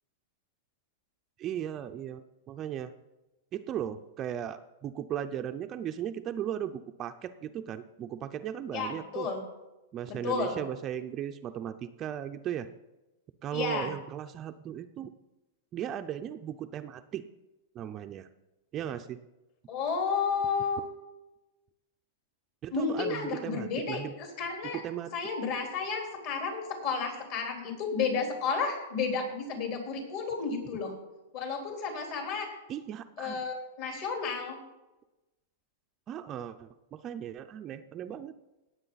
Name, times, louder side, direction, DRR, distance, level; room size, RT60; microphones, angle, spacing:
voice 1, 1.4-2.9 3.5-9.3 9.9-12.7 13.4-15.1 15.7-17.2 17.7-18.3 18.7-19.2 22.6-24.2 24.7-25.1 32.7-33.5 36.1-38.3, right 10 dB, 25° right, 8 dB, 0.5 m, -37 dB
voice 2, 8.7-9.4 10.1-10.6 13.5-13.9 19.7-20.8 22.7-24.8 25.1-30.9 31.3-32.5 33.2-34.6, left 5 dB, 50° left, 1 dB, 3.8 m, -32 dB
18.0 x 7.6 x 4.0 m, 1.0 s
supercardioid pair, 150°, 0 cm